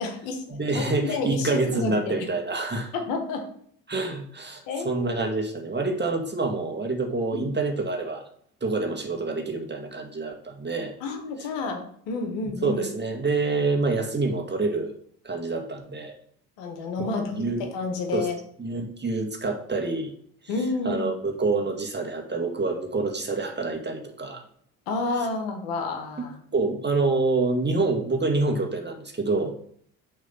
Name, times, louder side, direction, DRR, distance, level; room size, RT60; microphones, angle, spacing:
voice 1, 0.0-2.3 2.9-3.5 4.7-5.3 7.3-7.5 11.0-12.8 16.6-17.4 17.7-18.4 20.5-21.1 24.9-26.4, left 3 dB, 70° left, 5 dB, 1.4 m, -30 dB
voice 2, 0.5-2.9 3.9-8.2 8.6-10.9 11.4-11.5 12.6-14.9 15.2-16.1 17.0-17.7 18.1-18.3 18.6-20.1 20.9-24.4 26.2-26.3 26.5-29.5, right 3 dB, 25° right, 3 dB, 1.7 m, -27 dB
6.3 x 3.7 x 5.6 m, 0.63 s
hypercardioid pair, 50°, 45 cm